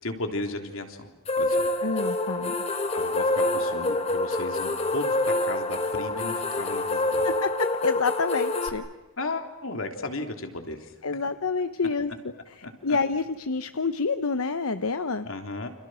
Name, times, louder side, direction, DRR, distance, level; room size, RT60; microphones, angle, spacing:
voice 1, 0.0-1.1 1.4-1.7 2.9-7.3 9.2-10.8 12.6-12.7 15.2-15.7, left 2 dB, 65° left, 5 dB, 3.5 m, -34 dB
sound 1, 1.3-8.7, left 2 dB, 30° left, 2.4 m, -26 dB
voice 2, 1.8-2.5 6.6-6.7 7.2-8.8 11.0-15.3, left 4 dB, 85° left, 10 dB, 1.0 m, -28 dB
30.0 x 28.0 x 6.4 m, 1.1 s
head